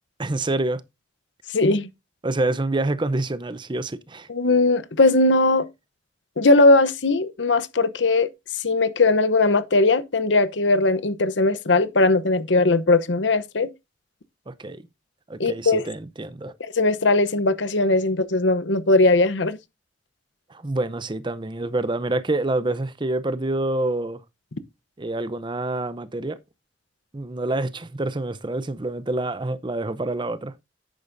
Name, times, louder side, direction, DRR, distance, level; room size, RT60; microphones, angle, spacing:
voice 1, 0.2-0.8 2.2-4.3 14.5-14.8 15.3-16.5 20.5-24.2 25.0-26.4 27.1-30.5, right 2 dB, 25° right, 0.7 m, -27 dB
voice 2, 1.5-1.9 4.3-5.7 6.4-8.3 8.6-13.7 15.4-15.8 16.6-19.6, left 2 dB, 75° left, 0.9 m, -19 dB
10.5 x 8.6 x 2.6 m
head